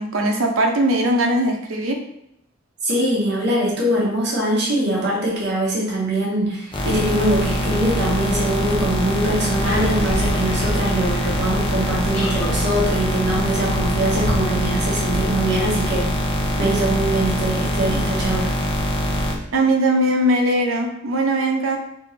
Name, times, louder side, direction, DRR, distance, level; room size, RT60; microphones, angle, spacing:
voice 1, 0.0-2.0 19.5-21.8, right 1 dB, 80° right, 3 dB, 0.8 m, -20 dB
voice 2, 2.8-16.1 16.6-18.6, right 1 dB, 55° right, -4 dB, 1.4 m, -22 dB
sound 1, 6.7-19.3, equal, 25° left, 0.7 m, -23 dB
sound 2, 9.6-14.7, left 1 dB, 80° left, 1.2 m, -31 dB
3.5 x 3.0 x 4.2 m, 0.79 s
head